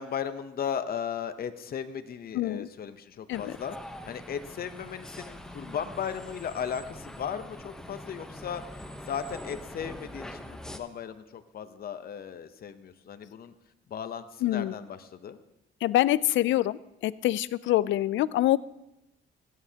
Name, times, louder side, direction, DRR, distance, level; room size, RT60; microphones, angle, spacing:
voice 1, 0.0-3.8 4.1-8.6 9.0-13.5 13.9-15.4, left 8 dB, 50° left, 10 dB, 0.7 m, -36 dB
voice 2, 2.3-2.7 3.3-3.5 14.4-14.7 15.8-18.6, left 14 dB, 75° left, 19 dB, 0.4 m, -25 dB
sound 1, 3.3-10.8, left 1 dB, 5° left, 0.8 m, -43 dB
16.0 x 9.4 x 2.8 m, 0.89 s
cardioid pair, 90°, 20 cm